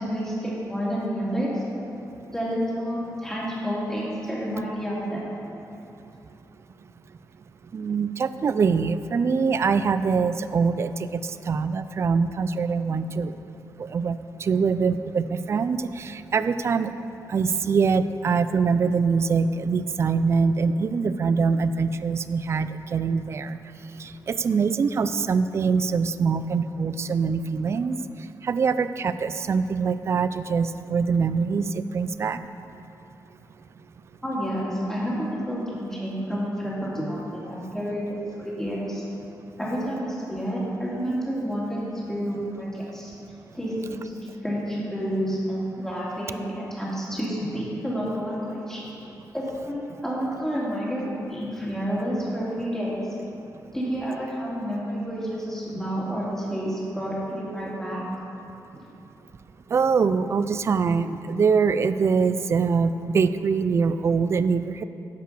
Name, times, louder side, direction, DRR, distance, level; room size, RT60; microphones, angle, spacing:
voice 1, 0.0-1.6 2.3-5.2 34.2-35.6 35.9-39.0 39.6-43.1 43.5-44.1 44.4-48.8 49.3-52.9 53.7-58.0, equal, 5° left, -7 dB, 2.4 m, -29 dB
voice 2, 7.7-11.2 11.5-13.4 13.8-16.9 17.3-23.6 24.0-27.9 28.4-32.4 59.7-64.8, right 5 dB, 40° right, 12 dB, 0.3 m, -24 dB
10.0 x 5.5 x 6.6 m, 2.9 s
wide cardioid pair, 135°, 7 cm